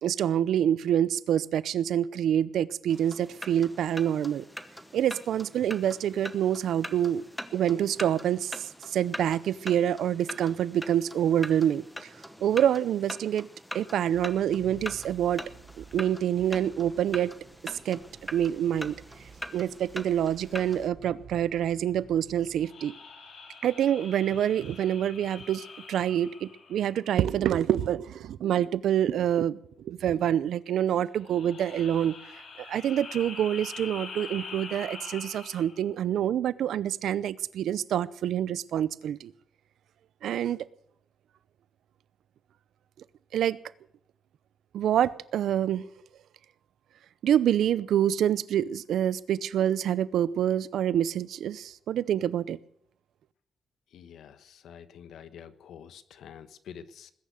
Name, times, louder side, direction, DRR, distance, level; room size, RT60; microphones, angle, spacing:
voice 1, 0.0-4.4 4.9-7.2 7.5-11.8 12.4-13.5 13.7-15.4 15.8-17.3 17.8-18.0 18.3-19.0 19.5-22.9 23.6-32.1 32.6-39.3 40.2-40.6 43.3-43.6 44.7-45.9 47.2-52.6, right 10 dB, 80° right, 18 dB, 0.6 m, -26 dB
sound 1, 2.9-20.9, equal, 5° left, 1.0 m, -43 dB
sound 2, 14.1-22.7, right 7 dB, 55° right, 1.5 m, -52 dB
sound 3, 22.5-27.3 31.1-35.9, left 4 dB, 55° left, 4.2 m, -44 dB
voice 2, 53.9-57.1, left 8 dB, 85° left, 12 dB, 1.2 m, -47 dB
20.0 x 10.5 x 6.4 m, 0.68 s
wide cardioid pair, 170°, 0 cm